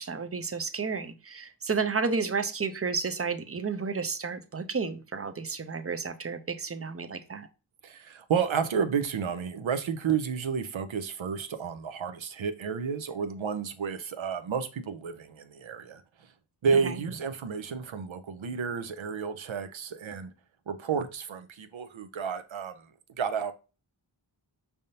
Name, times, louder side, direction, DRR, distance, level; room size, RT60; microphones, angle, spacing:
voice 1, 0.0-7.5 16.8-17.0, right 5 dB, 30° right, 0.6 m, -32 dB
voice 2, 7.8-16.0 16.6-20.3 20.7-22.7 23.2-23.5, right 6 dB, 75° right, 0.7 m, -31 dB
5.4 x 3.5 x 2.7 m
wide cardioid pair, 45°, 47 cm